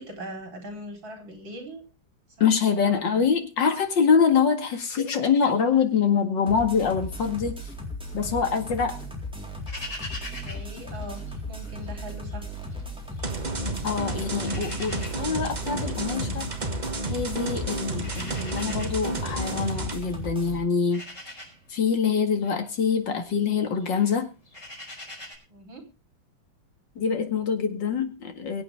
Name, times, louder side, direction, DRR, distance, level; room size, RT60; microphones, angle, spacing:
voice 1, 0.0-1.8 2.4-3.1 10.1-12.4 25.5-25.8, equal, 75° right, 4 dB, 4.8 m, -40 dB
voice 2, 2.4-7.6 8.1-9.0 13.8-16.5 17.1-21.1 21.7-24.3 27.0-28.6, left 6 dB, 65° left, 6 dB, 2.7 m, -25 dB
sound 1, 6.5-20.6, equal, 5° right, 3.8 m, -36 dB
sound 2, 9.7-11.9 12.2-13.5 13.9-25.3, left 1 dB, 40° left, 5.4 m, -44 dB
sound 3, 13.2-20.0, right 2 dB, 25° right, 1.2 m, -32 dB
23.0 x 8.6 x 3.5 m, 0.29 s
omnidirectional pair, 2.1 m